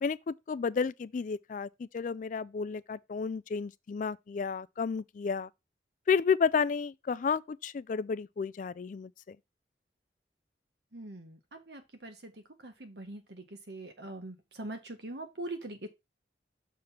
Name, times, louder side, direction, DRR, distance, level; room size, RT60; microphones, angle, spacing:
voice 1, 0.0-5.5 6.1-9.4, left 5 dB, 45° left, 0.3 m, -31 dB
voice 2, 10.9-12.3 12.6-15.9, right 2 dB, 70° right, 1.6 m, -43 dB
6.5 x 3.6 x 5.8 m
head